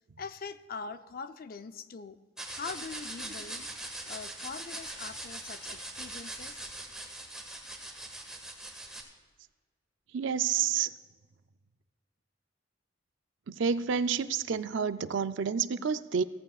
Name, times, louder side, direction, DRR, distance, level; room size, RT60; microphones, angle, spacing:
voice 1, 0.2-2.2 2.4-3.7 4.0-6.6, left 5 dB, 50° left, 11 dB, 0.5 m, -42 dB
sound 1, 2.4-9.0, right 1 dB, 5° right, 1.6 m, -41 dB
voice 2, 10.1-10.9 13.5-16.2, right 6 dB, 65° right, 12 dB, 0.5 m, -29 dB
16.5 x 14.5 x 2.4 m, 1.5 s
head